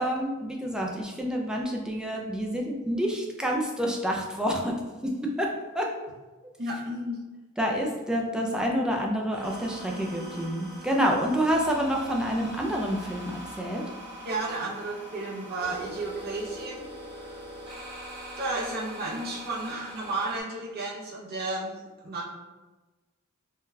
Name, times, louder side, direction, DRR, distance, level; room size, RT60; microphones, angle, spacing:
voice 1, 0.0-4.7 5.0-5.1 5.4-5.5 5.7-5.9 7.6-13.8, equal, 5° right, 0 dB, 0.3 m, -28 dB
voice 2, 6.6-7.2 8.1-8.2 14.2-17.4 18.4-22.3, right 2 dB, 45° right, -5 dB, 0.6 m, -33 dB
sound 1, 9.3-20.4, equal, 20° right, 1.0 m, -42 dB
3.7 x 2.2 x 2.6 m, 1.2 s
head